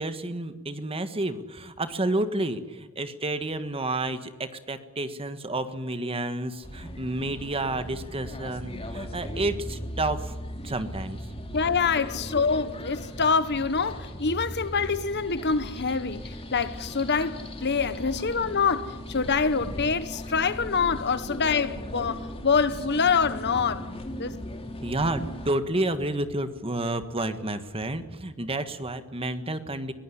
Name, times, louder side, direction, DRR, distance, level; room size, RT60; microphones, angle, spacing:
voice 1, 0.0-10.4 10.6-11.2 24.8-29.9, right 2 dB, 25° right, 1.5 m, -30 dB
sound 1, 6.6-25.5, left 1 dB, 30° left, 2.7 m, -38 dB
voice 2, 11.5-16.2 16.5-23.9 24.2-24.3, left 5 dB, 55° left, 1.3 m, -25 dB
22.0 x 18.0 x 9.9 m
head